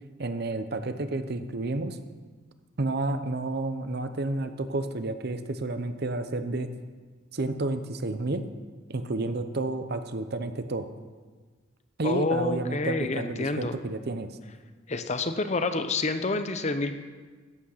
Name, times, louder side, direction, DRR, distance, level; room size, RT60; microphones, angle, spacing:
voice 1, 0.2-2.0 2.8-6.7 7.3-8.5 8.9-10.9 12.0-14.3, right 2 dB, 55° right, 10 dB, 0.8 m, -30 dB
voice 2, 12.0-13.7 14.9-17.0, left 3 dB, 35° left, 9 dB, 0.7 m, -28 dB
13.5 x 9.1 x 5.7 m, 1.4 s
head